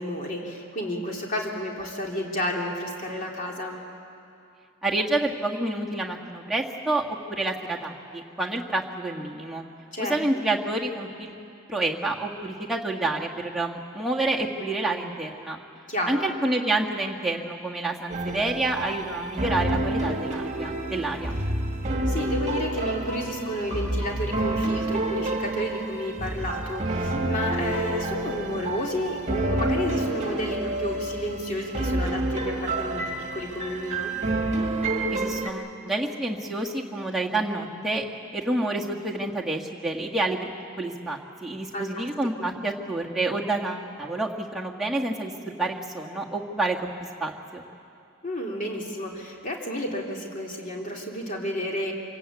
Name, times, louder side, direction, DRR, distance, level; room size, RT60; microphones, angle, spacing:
voice 1, 0.0-3.8 9.9-10.1 15.9-16.2 22.1-33.0 33.3-34.1 41.7-42.1 48.2-51.9, equal, 35° left, -1 dB, 3.1 m, -31 dB
voice 2, 4.8-9.6 10.0-11.4 11.7-15.6 16.1-21.4 35.1-38.0 38.3-40.5 40.8-46.8 47.2-47.6, right 2 dB, ahead, -3 dB, 1.6 m, -28 dB
sound 1, 18.1-35.5, right 1 dB, 30° right, 1.7 m, -28 dB
26.5 x 17.5 x 8.4 m, 2.6 s
head